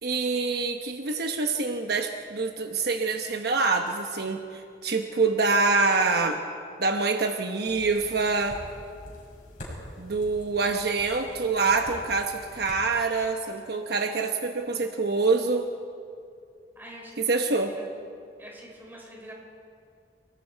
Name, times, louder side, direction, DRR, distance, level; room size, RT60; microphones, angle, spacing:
voice 1, 0.0-6.4 6.8-8.6 10.0-15.7 17.2-17.7, right 4 dB, 65° right, 4 dB, 1.0 m, -26 dB
sound 1, 7.6-12.8, left 1 dB, 50° left, 6.3 m, -45 dB
voice 2, 16.7-17.6 18.4-19.3, equal, 10° right, -2 dB, 5.1 m, -45 dB
29.5 x 19.5 x 4.6 m, 2.4 s
head